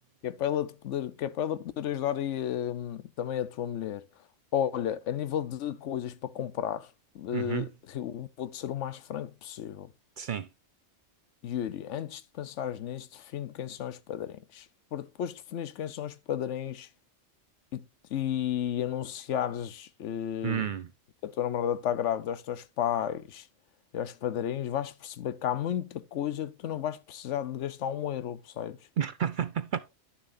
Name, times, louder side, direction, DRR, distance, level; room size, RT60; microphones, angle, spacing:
voice 1, 0.2-4.1 4.5-6.9 7.1-9.9 11.4-14.7 14.9-16.9 17.7-17.8 18.1-20.7 21.2-23.5 23.9-28.8, left 10 dB, 85° left, 1.0 m, -33 dB
voice 2, 7.3-7.7 10.2-10.5 20.4-20.9 29.0-29.8, right 9 dB, 60° right, 0.6 m, -31 dB
11.5 x 6.9 x 2.6 m
omnidirectional pair, 1.2 m